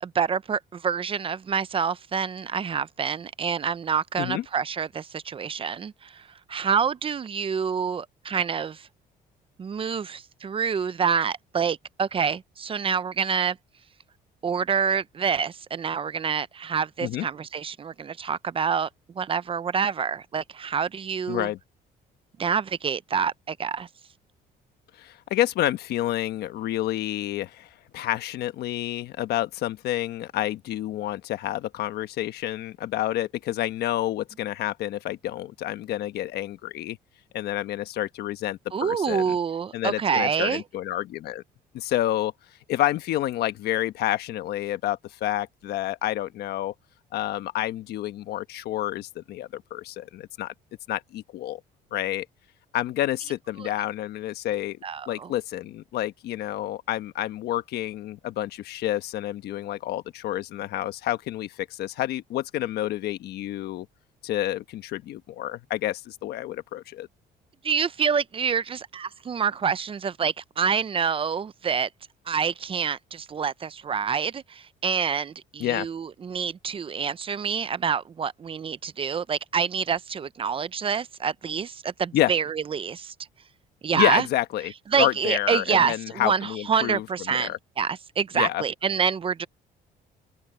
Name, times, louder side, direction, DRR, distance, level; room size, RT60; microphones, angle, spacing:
voice 1, 0.0-8.9 9.6-13.6 14.4-18.9 19.2-21.5 22.4-23.9 38.7-40.6 53.6-53.7 54.8-55.3 67.6-71.9 72.3-83.1 83.8-84.2 84.9-89.5, right 6 dB, 30° right, 0.7 m, -27 dB
voice 2, 21.3-21.6 24.9-37.0 37.3-39.4 39.7-41.4 41.7-42.3 42.7-46.7 47.1-50.5 50.9-51.6 51.9-52.2 52.7-54.8 55.1-63.9 64.2-67.1 75.6-75.9 82.1-82.3 83.9-87.6 88.3-88.6, left 14 dB, 75° left, 1.2 m, -29 dB
open air
cardioid pair, 110°, 17 cm